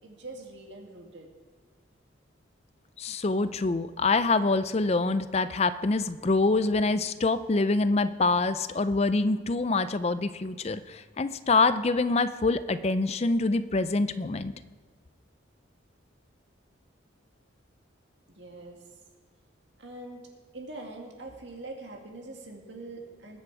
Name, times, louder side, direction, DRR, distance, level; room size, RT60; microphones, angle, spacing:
voice 1, 0.0-1.3 18.3-18.8 19.8-20.3 20.5-23.4, right 2 dB, 65° right, 1 dB, 2.1 m, -43 dB
voice 2, 3.0-14.5, left 3 dB, 30° left, 13 dB, 0.4 m, -25 dB
20.5 x 7.7 x 4.8 m, 1.4 s
head